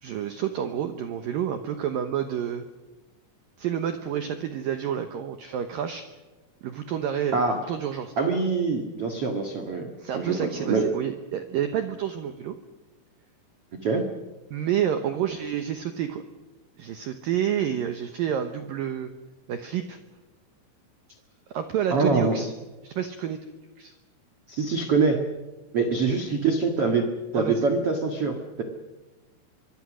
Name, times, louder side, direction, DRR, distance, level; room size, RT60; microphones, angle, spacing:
voice 1, 0.0-2.6 3.6-6.1 6.6-8.1 10.0-12.6 14.5-16.2 16.8-19.1 19.5-20.0 21.5-22.5 22.8-23.4 23.8-24.0 27.3-27.6, right 9 dB, 90° right, 8 dB, 2.0 m, -29 dB
voice 2, 8.2-9.9 10.1-10.9 13.8-14.0 21.9-22.4 24.5-25.2 25.7-28.6, right 4 dB, 65° right, 4 dB, 1.4 m, -24 dB
24.5 x 23.0 x 6.3 m, 1.2 s
omnidirectional pair, 5.7 m